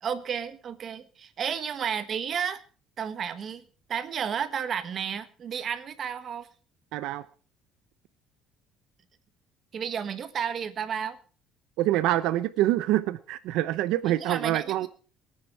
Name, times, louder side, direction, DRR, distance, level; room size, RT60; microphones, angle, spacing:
voice 1, 0.0-2.6 3.0-3.6 3.9-6.5 9.7-11.2 14.0-14.9, right 7 dB, 40° right, 11 dB, 1.3 m, -32 dB
voice 2, 6.9-7.3 11.8-14.9, right 14 dB, 80° right, 14 dB, 0.6 m, -26 dB
22.0 x 9.7 x 4.6 m, 0.39 s
cardioid pair, 150°, 0 cm